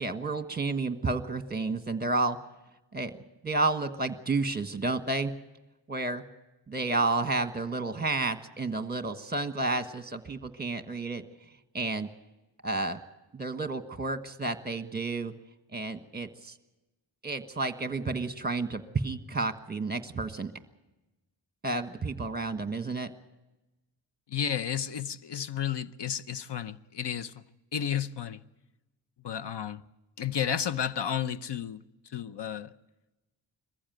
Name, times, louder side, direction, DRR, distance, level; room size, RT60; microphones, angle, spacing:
voice 1, 0.0-2.4 2.9-3.1 3.4-5.3 5.9-6.2 6.7-11.2 11.7-12.1 12.6-13.0 13.3-15.3 15.7-16.6 17.2-20.5 21.6-23.1, right 3 dB, 20° right, 1.4 m, -31 dB
voice 2, 24.3-27.3 27.7-28.4 29.2-29.8 30.2-31.8 32.1-32.7, left 9 dB, 60° left, 0.8 m, -32 dB
22.0 x 15.0 x 9.1 m
wide cardioid pair, 90°, 47 cm